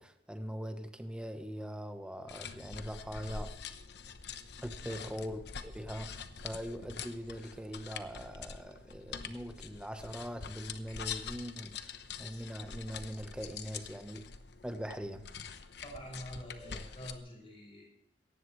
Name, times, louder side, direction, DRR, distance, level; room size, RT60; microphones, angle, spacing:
voice 1, 0.0-3.5 4.6-14.3 14.6-15.3, equal, 5° right, 1.1 m, -42 dB
sound 1, 2.3-17.2, left 6 dB, 65° left, 0.9 m, -45 dB
voice 2, 4.8-5.1 15.8-17.8, equal, 30° left, 6.5 m, -46 dB
18.0 x 15.0 x 3.2 m
head